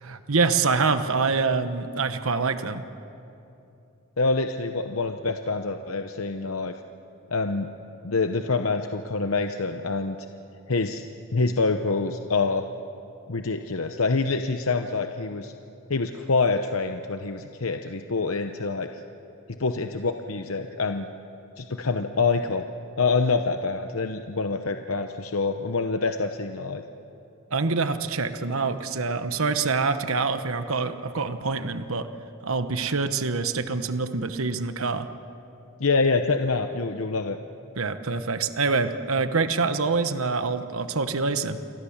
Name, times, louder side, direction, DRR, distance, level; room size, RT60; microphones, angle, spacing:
voice 1, 0.0-2.8 27.5-32.1 32.4-35.1 37.8-41.6, right 4 dB, 70° right, 9 dB, 1.1 m, -25 dB
voice 2, 4.2-6.7 7.3-7.7 8.0-10.2 10.7-11.1 11.3-12.7 13.3-15.5 15.9-19.0 19.6-21.1 21.6-22.7 23.0-26.8 35.8-37.4, left 4 dB, 70° left, 6 dB, 0.9 m, -26 dB
28.5 x 23.0 x 7.3 m, 2.8 s
head